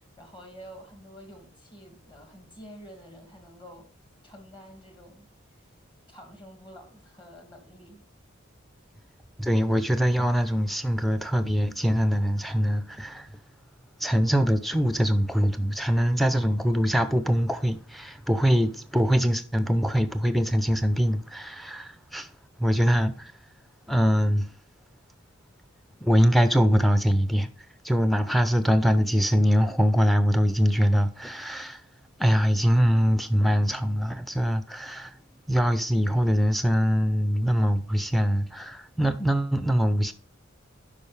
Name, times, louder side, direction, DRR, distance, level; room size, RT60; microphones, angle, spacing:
voice 1, 0.0-3.9 4.2-5.3 5.6-5.7 6.1-8.0, equal, 25° left, 1.9 m, -48 dB
voice 2, 9.4-13.3 14.0-22.3 22.6-23.3 23.9-24.5 26.0-27.5 27.8-31.8 32.2-35.1 35.5-40.1, equal, ahead, 0.6 m, -23 dB
11.5 x 5.4 x 3.3 m
head